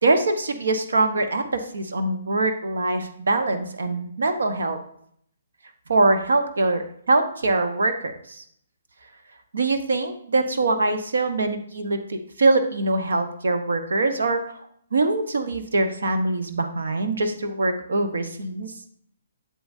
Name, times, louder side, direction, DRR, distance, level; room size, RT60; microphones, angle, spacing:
voice 1, 0.0-4.8 5.9-8.4 9.5-14.6 14.9-18.7, right 2 dB, 70° right, 7 dB, 1.0 m, -23 dB
7.9 x 7.9 x 2.7 m, 0.67 s
figure-of-eight pair, 130°, 0 cm